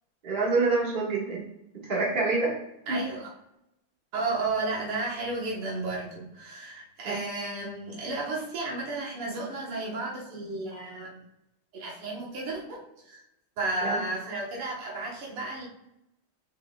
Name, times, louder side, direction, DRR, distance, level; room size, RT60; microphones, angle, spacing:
voice 1, 0.2-1.4 1.8-2.5 2.9-3.0 7.0-7.2 13.8-14.0, right 3 dB, 25° right, -4 dB, 1.6 m, -26 dB
voice 2, 2.9-3.3 4.1-11.2 11.7-13.2 13.6-15.7, right 2 dB, 85° right, -3 dB, 2.3 m, -33 dB
6.8 x 5.9 x 2.3 m, 0.85 s
omnidirectional pair, 2.4 m